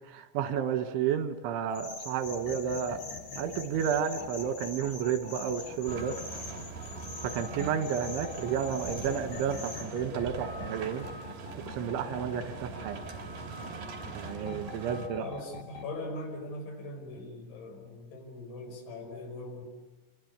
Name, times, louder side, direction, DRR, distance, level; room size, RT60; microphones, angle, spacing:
voice 1, 0.1-3.0 3.4-6.2 7.3-11.1 11.5-13.0 14.1-15.3, right 8 dB, 85° right, 9 dB, 4.0 m, -31 dB
sound 1, 1.7-9.9, left 3 dB, 40° left, 4.8 m, -45 dB
sound 2, 2.2-16.0, left 3 dB, 55° left, 3.1 m, -47 dB
sound 3, 5.8-15.1, right 3 dB, 50° right, 4.3 m, -42 dB
voice 2, 15.1-19.6, left 2 dB, 75° left, 0 dB, 7.7 m, -41 dB
28.5 x 23.0 x 8.4 m, 1.1 s
omnidirectional pair, 5.3 m